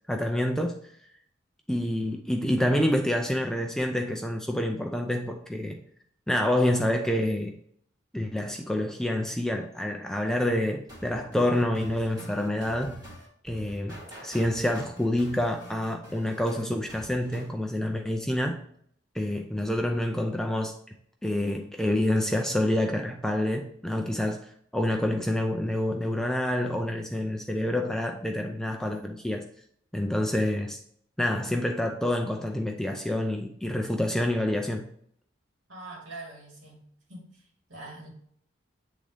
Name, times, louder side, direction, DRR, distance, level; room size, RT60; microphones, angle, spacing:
voice 1, 0.1-0.7 1.7-5.8 6.3-7.5 8.1-13.0 13.4-18.6 19.1-20.7 21.2-24.4 24.7-29.4 29.9-30.8 31.2-34.9, left 1 dB, 5° left, 2 dB, 0.4 m, -27 dB
sound 1, 10.9-17.5, equal, 20° right, 2.5 m, -46 dB
voice 2, 35.7-36.8 37.1-38.1, right 2 dB, 70° right, -2 dB, 2.4 m, -44 dB
8.3 x 3.8 x 3.3 m, 0.65 s
head